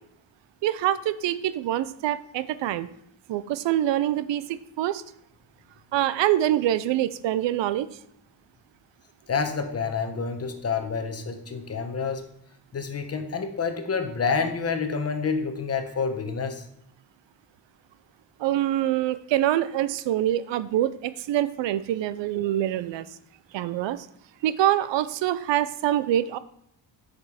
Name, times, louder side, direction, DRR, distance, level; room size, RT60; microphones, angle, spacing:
voice 1, 0.6-2.9 3.3-5.0 5.9-7.9 18.4-23.1 23.5-24.1 24.4-26.4, right 12 dB, 80° right, 15 dB, 0.6 m, -25 dB
voice 2, 9.3-12.3 12.7-16.6, left 5 dB, 35° left, 7 dB, 0.9 m, -28 dB
6.9 x 5.3 x 4.8 m, 0.71 s
cardioid pair, 125°, 43 cm